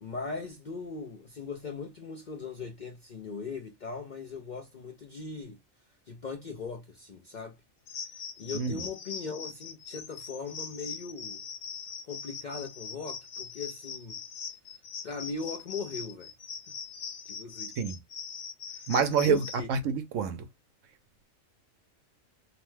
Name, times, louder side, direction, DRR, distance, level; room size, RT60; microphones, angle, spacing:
voice 1, 0.0-5.6 6.1-7.6 8.1-11.4 12.0-14.2 15.0-16.3 17.3-17.8 18.7-18.9 19.3-19.7, left 4 dB, 60° left, 0.5 m, -39 dB
sound 1, 7.9-19.6, left 6 dB, 80° left, 1.2 m, -41 dB
voice 2, 18.9-20.5, right 6 dB, 75° right, 0.9 m, -27 dB
2.8 x 2.1 x 3.1 m
omnidirectional pair, 1.4 m